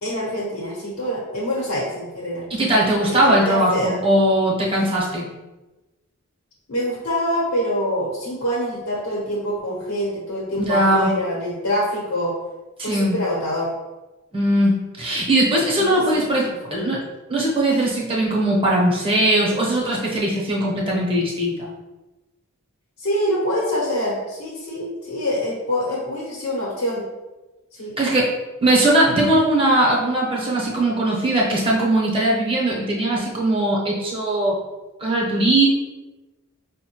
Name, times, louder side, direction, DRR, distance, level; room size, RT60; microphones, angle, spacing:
voice 1, 0.0-2.5 3.1-4.0 6.7-12.3 12.8-13.7 15.8-16.3 16.6-16.7 23.0-27.0 27.7-27.9, equal, 75° left, -5 dB, 0.9 m, -25 dB
voice 2, 2.5-5.3 10.6-11.1 12.8-13.2 14.3-17.0 17.3-21.7 28.0-28.3 28.6-34.6 35.0-35.7, right 1 dB, 25° right, -3 dB, 0.7 m, -20 dB
5.1 x 2.1 x 2.9 m, 1.1 s
head